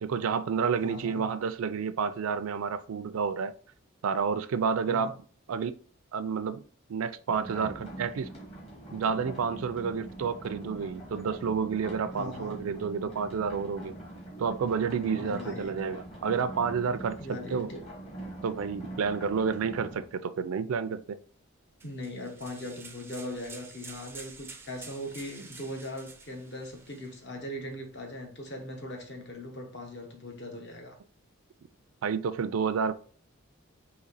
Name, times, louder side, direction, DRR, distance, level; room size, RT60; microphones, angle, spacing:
voice 1, 0.0-3.5 4.0-5.2 5.5-5.8 6.1-6.6 6.9-8.3 8.9-13.9 14.4-17.7 18.4-21.2 32.0-32.9, right 6 dB, 80° right, 0.4 m, -30 dB
voice 2, 0.8-1.2 4.9-5.1 12.2-12.6 15.1-15.8 17.2-17.8 21.8-30.9, left 1 dB, 55° left, 1.0 m, -40 dB
sound 1, 7.3-20.1, right 1 dB, 30° left, 1.2 m, -43 dB
sound 2, 21.8-27.2, right 4 dB, 10° right, 0.4 m, -49 dB
4.1 x 2.8 x 4.0 m
head